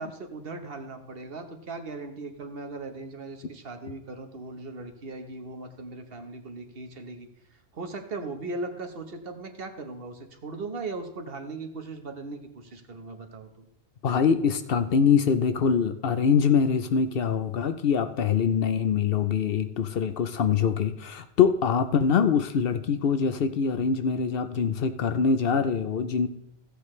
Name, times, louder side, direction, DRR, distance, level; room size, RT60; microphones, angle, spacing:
voice 1, 0.0-13.7, right 3 dB, 65° right, 6 dB, 1.3 m, -38 dB
voice 2, 14.0-26.3, left 6 dB, 65° left, 10 dB, 0.9 m, -24 dB
15.0 x 8.2 x 3.2 m, 0.81 s
omnidirectional pair, 1.1 m